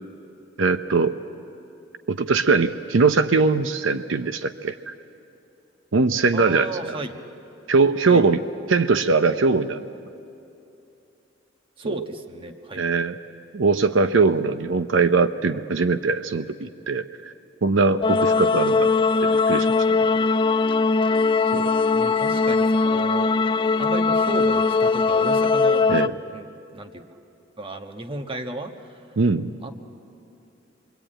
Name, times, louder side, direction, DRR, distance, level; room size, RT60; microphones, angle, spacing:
voice 1, 0.6-1.2 2.1-4.9 5.9-7.0 7.7-8.4 8.7-9.8 11.8-12.0 12.8-13.2 13.5-17.3 17.6-18.9 19.2-19.7 21.5-21.7 25.9-26.1 29.2-29.6, right 4 dB, 80° right, 10 dB, 0.7 m, -21 dB
voice 2, 6.3-7.2 8.1-8.3 11.8-12.8 21.9-23.3 23.8-25.8 26.3-27.1 27.6-29.1 29.6-29.7, right 2 dB, 30° right, 6 dB, 1.3 m, -34 dB
sound 1, 18.0-26.1, left 4 dB, 30° left, 0.5 m, -20 dB
26.0 x 22.5 x 9.0 m, 2.8 s
head